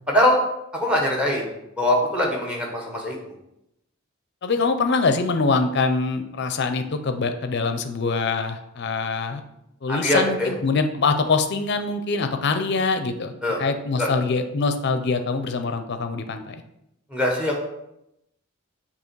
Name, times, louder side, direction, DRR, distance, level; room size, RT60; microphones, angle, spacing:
voice 1, 0.7-1.5 1.8-3.2 9.9-10.5 13.4-13.6 14.0-14.1 17.1-17.6, left 1 dB, 5° right, -1 dB, 1.1 m, -22 dB
voice 2, 4.4-9.4 9.8-16.6, left 4 dB, 55° left, 8 dB, 0.5 m, -24 dB
7.1 x 2.9 x 4.6 m, 0.83 s
head